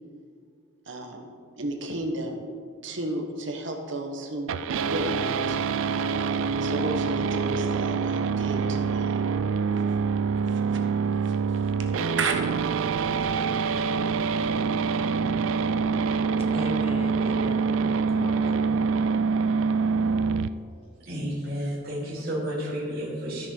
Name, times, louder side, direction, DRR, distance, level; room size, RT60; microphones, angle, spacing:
voice 1, 0.9-2.4 2.8-4.5 4.8-5.9 6.2-9.2 10.5-10.6 11.1-11.7 12.2-12.3, right 2 dB, 65° right, 1.2 m, -33 dB
sound 1, 4.5-20.5, right 5 dB, 80° right, 0.4 m, -25 dB
voice 2, 16.4-19.1, left 1 dB, 30° left, 0.9 m, -37 dB
voice 3, 21.1-23.5, equal, 50° right, 2.8 m, -31 dB
13.5 x 6.1 x 4.5 m
head